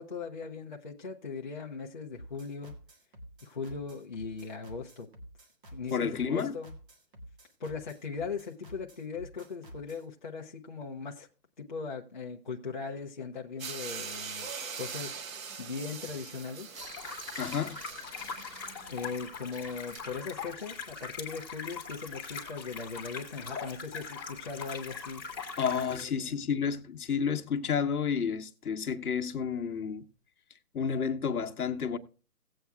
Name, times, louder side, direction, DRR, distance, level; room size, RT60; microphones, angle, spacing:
voice 1, 0.0-2.7 3.4-5.1 5.7-6.7 7.6-11.3 11.6-14.5 14.8-15.2 15.6-16.8 18.9-25.2 26.0-26.4, left 5 dB, 30° left, 0.6 m, -39 dB
sound 1, 2.1-10.1, equal, 35° right, 1.7 m, -50 dB
voice 2, 5.9-6.5 17.4-17.8 25.6-30.0 30.7-32.0, left 6 dB, 65° left, 1.1 m, -30 dB
sound 2, 13.6-20.0, right 6 dB, 55° right, 1.0 m, -42 dB
sound 3, 16.8-26.0, left 5 dB, 5° left, 1.2 m, -41 dB
17.5 x 8.2 x 2.3 m
hypercardioid pair, 170°, 48 cm